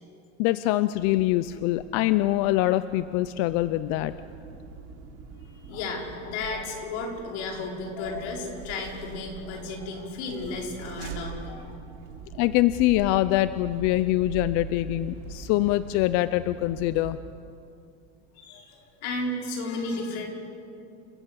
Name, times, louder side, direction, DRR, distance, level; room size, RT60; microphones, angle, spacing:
voice 1, 0.4-4.1 12.3-17.2, left 16 dB, 55° left, 14 dB, 0.6 m, -24 dB
sound 1, 0.9-17.1, right 6 dB, 90° right, 3.5 m, -43 dB
voice 2, 5.4-11.7 18.3-20.3, left 2 dB, 85° left, 0 dB, 5.2 m, -33 dB
28.5 x 14.5 x 8.3 m, 2.5 s
cardioid pair, 160°, 31 cm